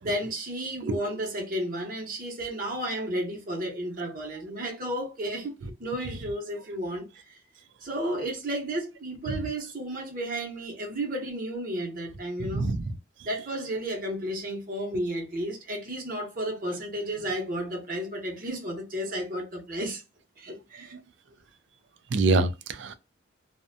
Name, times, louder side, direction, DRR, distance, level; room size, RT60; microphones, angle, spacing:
voice 1, 0.0-5.5 5.8-7.4 7.8-12.6 13.2-20.0 20.4-20.9, right 1 dB, 45° right, 0.8 m, -32 dB
voice 2, 12.4-13.0 20.9-21.0 22.1-22.9, right 3 dB, 65° right, 0.4 m, -26 dB
2.5 x 2.1 x 2.5 m
head